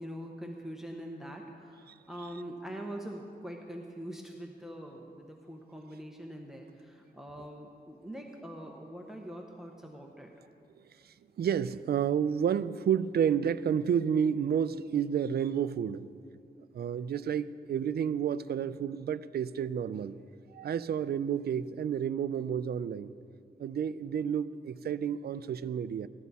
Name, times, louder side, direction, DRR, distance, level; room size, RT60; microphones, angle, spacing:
voice 1, 0.0-10.3, equal, ahead, 1 dB, 0.9 m, -43 dB
voice 2, 11.4-16.1 16.7-20.2 20.5-23.1 23.6-26.1, right 8 dB, 70° right, 15 dB, 0.4 m, -30 dB
15.5 x 12.5 x 4.1 m, 2.4 s
wide cardioid pair, 130°, 17 cm